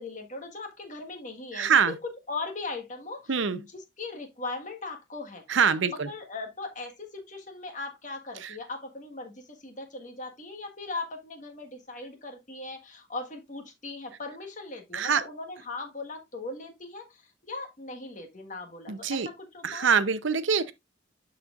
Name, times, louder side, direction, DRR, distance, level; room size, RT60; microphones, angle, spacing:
voice 1, 0.0-1.8 2.3-5.4 5.9-19.9, left 3 dB, 40° left, 1.5 m, -39 dB
voice 2, 1.5-2.0 3.3-3.6 5.5-6.1 8.4-8.5 14.9-15.2 18.9-19.3 19.6-20.7, right 6 dB, 75° right, 0.7 m, -24 dB
12.0 x 4.3 x 2.4 m
head